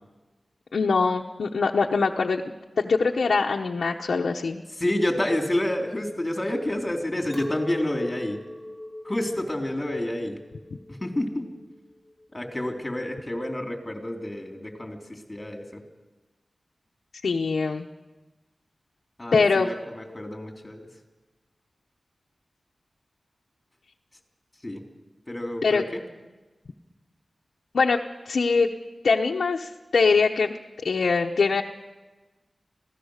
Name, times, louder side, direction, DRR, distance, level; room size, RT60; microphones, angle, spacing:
voice 1, 0.7-2.4 2.8-4.6 17.2-17.9 19.3-19.7 25.6-25.8 27.7-28.0 28.3-28.7 29.0-30.5 30.8-31.6, left 4 dB, 90° left, 1 dB, 1.0 m, -22 dB
voice 2, 4.8-8.4 9.1-10.4 10.9-11.5 12.3-15.0 15.3-15.6 19.2-20.8 24.6-24.8 25.3-25.9, left 1 dB, 20° left, 2 dB, 3.7 m, -29 dB
Chink clink, 7.3-12.7, left 1 dB, 10° right, 5.3 m, -41 dB
26.0 x 17.0 x 6.6 m, 1.2 s
wide cardioid pair, 75°, 0 cm